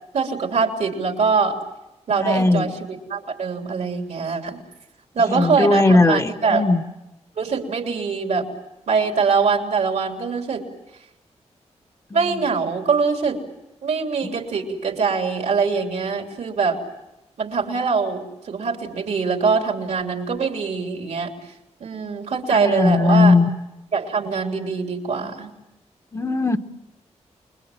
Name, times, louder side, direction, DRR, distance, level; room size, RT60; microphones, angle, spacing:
voice 1, 0.1-1.6 2.1-4.6 5.1-6.6 7.4-8.5 8.9-10.7 12.1-13.4 13.8-16.8 17.4-21.3 21.8-23.3 23.9-25.5, right 5 dB, 80° right, 3 dB, 3.3 m, -23 dB
voice 2, 2.1-2.6 5.3-6.8 14.3-14.4 22.5-23.5 26.1-26.6, left 3 dB, 25° left, 7 dB, 1.1 m, -18 dB
29.0 x 21.5 x 7.5 m, 0.95 s
wide cardioid pair, 110°, 12 cm